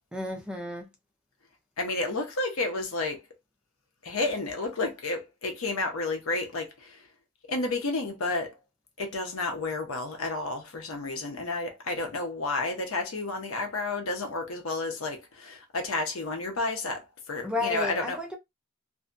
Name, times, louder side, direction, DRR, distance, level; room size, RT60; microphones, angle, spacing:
voice 1, 0.1-0.9 17.4-18.4, left 2 dB, 5° right, 0.4 m, -32 dB
voice 2, 1.8-3.2 4.0-7.0 7.5-8.6 9.0-18.2, left 2 dB, 85° left, 0.7 m, -31 dB
2.5 x 2.2 x 2.5 m
head